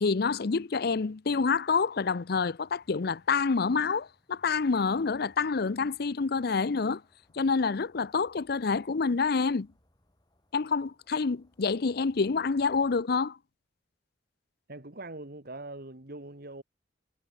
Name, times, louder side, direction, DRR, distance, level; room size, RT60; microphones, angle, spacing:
voice 1, 0.0-7.0 7.3-9.7 10.5-13.4, left 4 dB, 60° left, 0.6 m, -27 dB
sound 1, 2.6-13.0, left 1 dB, 25° left, 5.8 m, -68 dB
voice 2, 14.7-16.6, right 2 dB, 55° right, 2.4 m, -42 dB
head